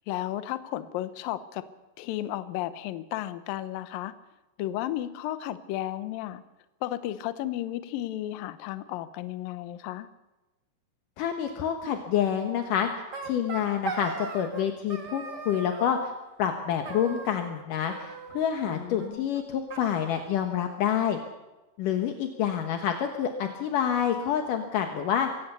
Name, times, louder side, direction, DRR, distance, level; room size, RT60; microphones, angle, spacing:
voice 1, 0.1-1.6 2.0-4.2 4.6-6.4 6.8-10.1 18.7-19.3, left 13 dB, 90° left, 12 dB, 2.0 m, -33 dB
voice 2, 11.2-12.9 13.2-16.1 16.4-21.2 21.8-25.3, left 9 dB, 70° left, 5 dB, 2.1 m, -28 dB
sound 1, 12.8-14.6 14.9-15.9 16.8-17.6 17.9-18.7 19.0-19.1 19.3-19.4 19.7-20.7, right 4 dB, 70° right, 0.9 m, -38 dB
23.0 x 17.5 x 6.9 m, 1.1 s
omnidirectional pair, 5.5 m